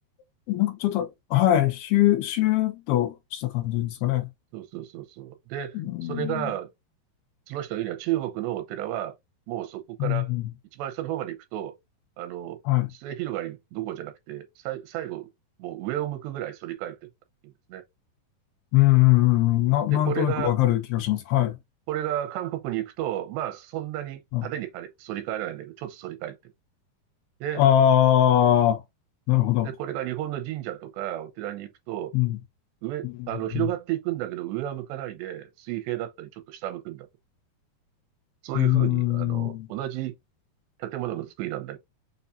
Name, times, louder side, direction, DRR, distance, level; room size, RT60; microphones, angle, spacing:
voice 1, 0.5-4.3 5.8-6.5 10.0-10.5 12.7-12.9 18.7-21.6 24.3-24.5 27.6-28.8 29.3-29.7 32.1-32.4 33.0-33.7 38.6-39.7, left 13 dB, 80° left, 2.5 m, -22 dB
voice 2, 4.5-6.7 7.5-9.2 9.5-10.3 10.7-11.8 12.2-12.6 12.9-15.3 15.6-17.1 17.4-17.8 19.9-20.6 21.9-26.4 27.4-27.7 29.6-32.1 32.8-37.1 38.4-40.1 40.8-41.8, right 13 dB, 90° right, 3.0 m, -32 dB
6.8 x 2.5 x 2.6 m
omnidirectional pair, 4.8 m